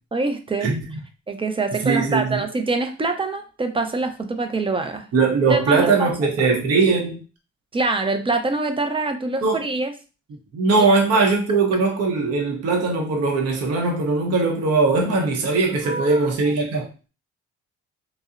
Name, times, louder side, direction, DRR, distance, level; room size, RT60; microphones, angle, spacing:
voice 1, 0.1-0.7 1.3-5.1 5.5-6.1 7.7-9.9 10.8-11.0 15.8-16.5, right 3 dB, 20° right, 0.4 m, -25 dB
voice 2, 1.8-2.4 5.1-7.2 9.4-9.6 10.5-16.9, right 4 dB, 55° right, 0.7 m, -20 dB
2.7 x 2.0 x 2.4 m
cardioid pair, 90°, 30 cm